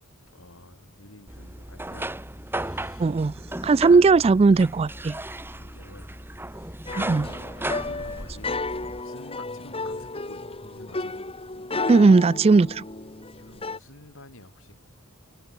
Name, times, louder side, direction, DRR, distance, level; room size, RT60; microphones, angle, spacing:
voice 1, 0.3-2.2 2.5-4.0 5.3-6.1 6.5-8.6 8.9-10.4 10.7-11.2 13.3-14.8, left 1 dB, 65° left, 7.5 m, -50 dB
sound 1, 1.3-9.0, right 1 dB, 10° right, 4.9 m, -35 dB
voice 2, 3.0-3.3 3.6-5.2 7.0-7.3 11.9-12.8, right 4 dB, 30° right, 0.3 m, -17 dB
sound 2, 6.9-13.8, left 3 dB, 25° left, 2.4 m, -33 dB
head